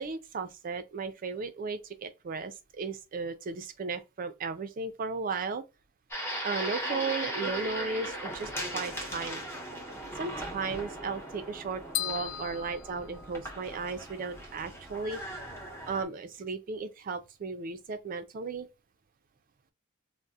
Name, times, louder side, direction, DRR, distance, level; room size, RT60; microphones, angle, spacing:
voice 1, 0.0-5.6 6.4-9.4 10.2-15.2 15.8-18.7, right 4 dB, 40° right, 0.4 m, -35 dB
sound 1, 6.1-16.0, equal, 10° left, 0.6 m, -38 dB
sound 2, 11.9-13.9, left 12 dB, 85° left, 0.4 m, -37 dB
4.0 x 2.0 x 2.3 m
head